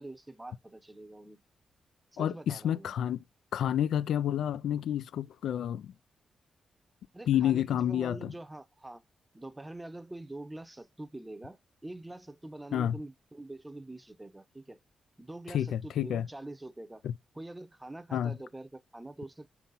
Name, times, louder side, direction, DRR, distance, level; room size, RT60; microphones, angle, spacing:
voice 1, 0.0-1.4 2.1-2.9 7.1-9.0 9.3-14.8 15.2-17.0 17.3-19.5, right 2 dB, 10° right, 0.7 m, -45 dB
voice 2, 2.2-3.2 3.5-5.9 7.3-8.3 12.7-13.0 15.5-16.3 17.0-17.1 18.1-18.4, left 10 dB, 85° left, 0.3 m, -29 dB
4.5 x 4.1 x 5.4 m
cardioid pair, 115°, 0 cm